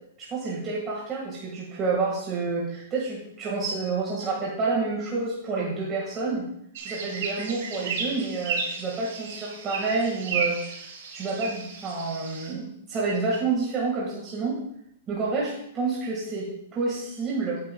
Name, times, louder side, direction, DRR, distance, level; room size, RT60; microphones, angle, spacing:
voice 1, 0.2-6.4 6.8-10.6 11.1-14.6 15.1-17.6, right 4 dB, 20° right, -4 dB, 1.7 m, -29 dB
sound 1, 6.8-12.5, right 5 dB, 55° right, 3.2 m, -33 dB
13.5 x 8.8 x 2.3 m, 0.74 s
hypercardioid pair, 170°, 0 cm